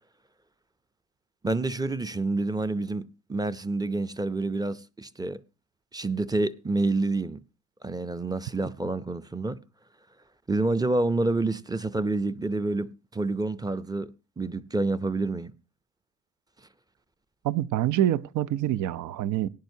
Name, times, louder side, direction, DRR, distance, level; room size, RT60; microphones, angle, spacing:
voice 1, 1.4-5.4 5.9-7.4 7.8-9.6 10.5-15.5, right 2 dB, 15° right, 0.5 m, -28 dB
voice 2, 17.4-19.5, right 12 dB, 75° right, 0.6 m, -26 dB
18.0 x 10.5 x 2.7 m
cardioid pair, 90°, 30 cm